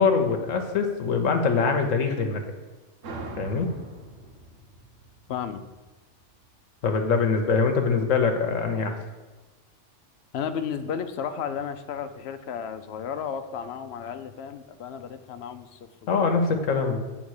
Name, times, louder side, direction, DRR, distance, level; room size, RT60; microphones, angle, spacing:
voice 1, 0.0-2.4 3.4-3.7 6.8-9.0 16.1-17.0, left 5 dB, 85° left, 4 dB, 1.2 m, -23 dB
sound 1, 3.0-6.3, right 2 dB, 80° right, 1.3 m, -41 dB
voice 2, 5.3-5.6 10.3-16.2, left 7 dB, 65° left, 10 dB, 0.8 m, -33 dB
8.5 x 3.6 x 6.4 m, 1.2 s
omnidirectional pair, 1.3 m